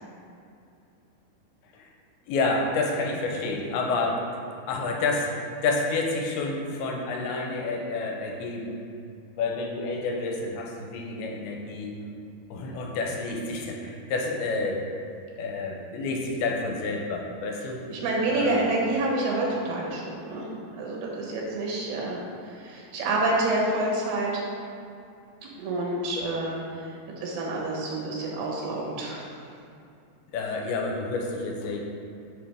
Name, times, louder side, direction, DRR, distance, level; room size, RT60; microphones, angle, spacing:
voice 1, 2.3-4.2 4.7-8.8 9.4-12.0 12.5-14.8 15.4-17.8 18.3-18.8 26.2-26.3 30.3-31.8, left 3 dB, 85° left, 0 dB, 2.6 m, -29 dB
voice 2, 17.9-22.2 22.5-24.4 25.6-26.8 27.2-29.3, right 2 dB, 85° right, -3 dB, 3.1 m, -28 dB
6.6 x 5.7 x 3.4 m, 2.5 s
omnidirectional pair, 4.5 m